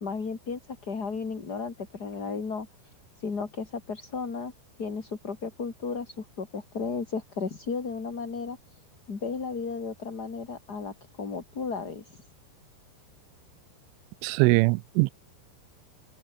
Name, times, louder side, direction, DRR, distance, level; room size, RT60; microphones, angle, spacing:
voice 1, 0.0-2.7 3.2-4.5 4.8-8.6 9.1-12.2, left 5 dB, 30° left, 2.2 m, -34 dB
voice 2, 14.2-15.1, right 25 dB, 85° right, 3.0 m, -22 dB
open air
omnidirectional pair, 5.5 m